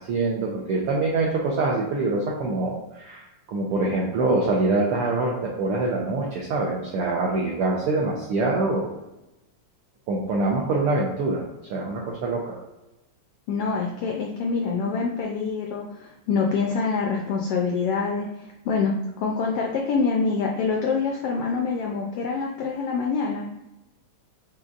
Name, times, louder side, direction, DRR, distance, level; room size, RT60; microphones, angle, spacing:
voice 1, 0.0-8.9 10.1-11.4 11.7-12.6, right 3 dB, 80° right, -3 dB, 1.2 m, -25 dB
voice 2, 13.5-18.3 18.6-23.4, left 4 dB, 85° left, -1 dB, 1.3 m, -25 dB
6.6 x 3.0 x 2.4 m, 0.94 s
omnidirectional pair, 3.3 m